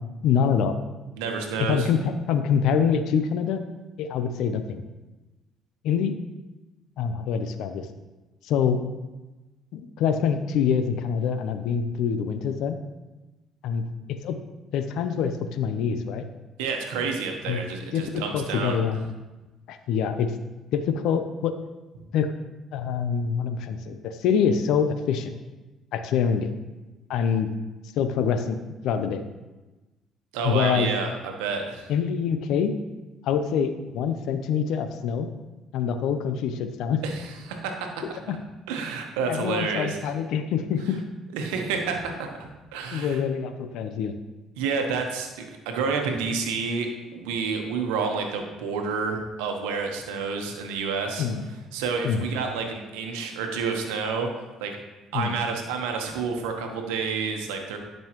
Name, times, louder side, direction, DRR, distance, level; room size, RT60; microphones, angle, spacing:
voice 1, 0.2-0.8 1.6-3.6 4.0-4.8 5.8-6.1 7.0-7.9 8.4-8.8 9.7-12.8 13.6-13.8 14.1-14.4 14.7-16.2 17.5-17.6 17.9-19.1 19.7-20.3 20.7-21.6 22.1-22.3 22.7-25.3 25.9-26.5 27.1-27.5 28.0-28.6 28.8-29.2 30.4-30.9 31.9-32.7 33.2-35.3 35.7-37.0 38.3-38.4 39.3-41.0 42.9-44.1 51.2-51.4 52.0-52.2 55.1-55.4, left 7 dB, 75° left, 9 dB, 0.6 m, -25 dB
voice 2, 1.2-1.9 16.6-18.8 30.3-31.9 37.0-38.0 38.7-40.1 41.3-43.2 44.6-51.3 51.7-54.3 54.6-54.8 55.1-57.8, right 5 dB, 90° right, 3 dB, 1.1 m, -29 dB
11.0 x 5.4 x 3.0 m, 1.1 s
supercardioid pair, 75°, 0 cm